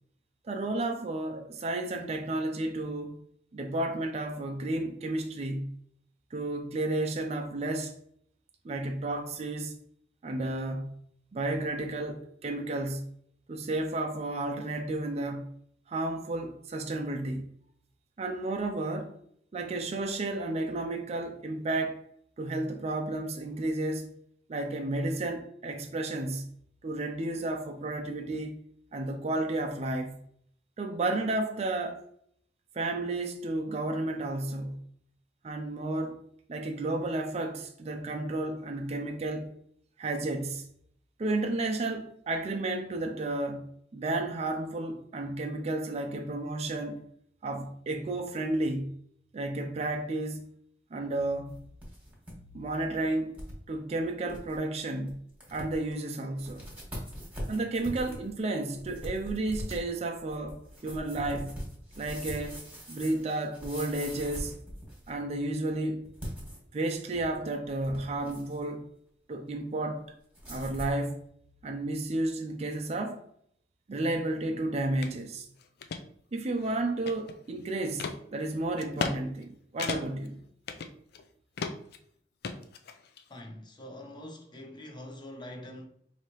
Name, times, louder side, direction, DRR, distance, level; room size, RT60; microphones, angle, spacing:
voice 1, 0.5-3.2 3.5-5.7 6.3-7.9 8.6-9.8 10.2-10.9 11.3-13.1 13.5-15.5 15.9-17.4 18.2-19.1 19.5-22.0 22.4-24.1 24.5-26.5 26.8-28.6 28.9-30.1 30.8-32.0 32.7-34.8 35.4-36.2 36.5-39.5 40.0-40.6 41.2-43.6 43.9-47.0 47.4-48.9 49.3-50.4 50.9-51.5 52.5-53.3 53.7-55.2 55.5-56.6 57.5-61.6 62.0-62.6 62.9-64.5 65.1-66.0 66.7-68.9 69.3-70.1 70.5-71.2 71.6-73.2 73.9-75.5 76.3-80.4, right 2 dB, 35° right, 0.4 m, -32 dB
sound 1, 51.5-52.3 52.7-52.8 53.3-53.6 54.0-54.1 54.3-54.6 55.1-55.2 55.4-55.9 56.4-65.2 66.1-67.3 67.7-68.6 70.3-71.0, equal, 10° right, 1.5 m, -41 dB
sound 2, 75.0-75.1 75.6-76.0 76.6-77.5 78.0-78.2 78.8-79.2 79.4-79.5 79.8-80.3 80.7-81.2 81.6-82.0 82.4-83.2, left 5 dB, 60° left, 0.4 m, -35 dB
voice 2, 83.3-85.9, left 1 dB, 25° left, 0.7 m, -44 dB
4.7 x 2.8 x 2.9 m
head